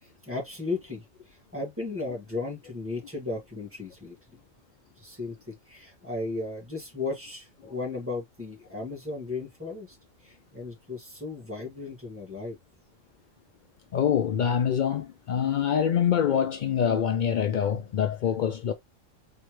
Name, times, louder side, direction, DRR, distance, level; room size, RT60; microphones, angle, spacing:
voice 1, 0.0-4.2 5.0-10.0 10.2-12.6, left 3 dB, 10° right, 2.0 m, -35 dB
voice 2, 13.9-18.7, left 8 dB, 80° left, 0.4 m, -25 dB
4.3 x 3.4 x 3.0 m
omnidirectional pair, 1.3 m